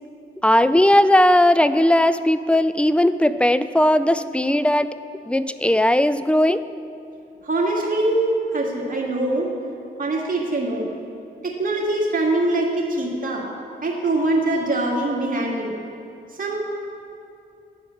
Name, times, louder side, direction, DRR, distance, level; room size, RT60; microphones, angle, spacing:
voice 1, 0.4-4.9 5.3-6.6, left 1 dB, 5° left, 13 dB, 0.3 m, -17 dB
voice 2, 7.4-9.5 10.0-10.9 11.4-13.5 13.8-15.7 16.4-16.7, right 2 dB, 40° right, -2 dB, 1.9 m, -23 dB
9.2 x 4.8 x 7.0 m, 2.6 s
supercardioid pair, 50°, 21 cm